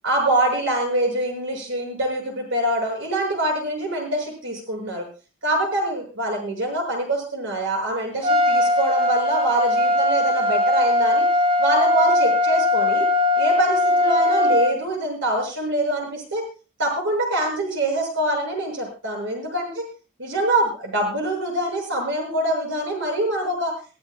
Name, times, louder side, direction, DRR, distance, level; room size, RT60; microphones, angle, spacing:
voice 1, 0.0-5.0 5.4-11.3 11.6-13.1 13.3-16.5 16.8-19.8 20.2-23.7, right 1 dB, 70° right, 2 dB, 6.9 m, -24 dB
Trumpet, 8.2-14.8, left 1 dB, 30° right, 1.8 m, -19 dB
23.0 x 14.0 x 2.3 m, 0.33 s
head